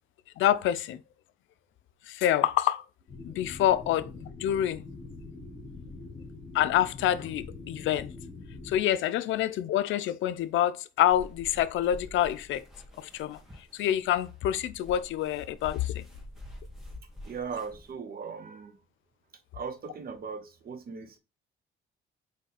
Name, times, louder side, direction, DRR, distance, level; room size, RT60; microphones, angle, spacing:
voice 1, 0.4-1.0 2.1-2.8 3.2-4.8 6.5-8.1 8.6-12.6 13.0-13.4 13.7-16.0, left 12 dB, 80° left, 0.4 m, -27 dB
sound 1, 3.1-8.8, left 3 dB, 50° left, 1.3 m, -44 dB
sound 2, 11.1-17.9, left 1 dB, ahead, 1.8 m, -48 dB
voice 2, 17.2-18.8 19.5-21.2, right 5 dB, 50° right, 0.9 m, -38 dB
3.9 x 3.2 x 4.1 m
cardioid pair, 90°, 20 cm